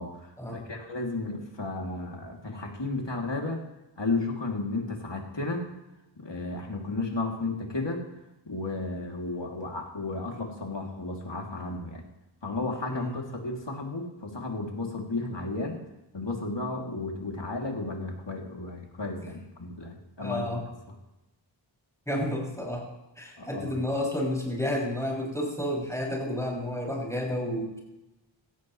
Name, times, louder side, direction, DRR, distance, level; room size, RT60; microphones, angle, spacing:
voice 1, 0.0-3.6 4.0-5.7 6.2-8.0 8.5-12.0 12.4-15.8 16.1-20.5 23.4-23.7, left 3 dB, 60° left, 0 dB, 3.0 m, -33 dB
voice 2, 20.2-20.6 22.1-22.8 23.2-27.8, left 1 dB, 5° left, -2 dB, 6.8 m, -31 dB
16.5 x 16.0 x 3.3 m, 0.96 s
wide cardioid pair, 40°, 48 cm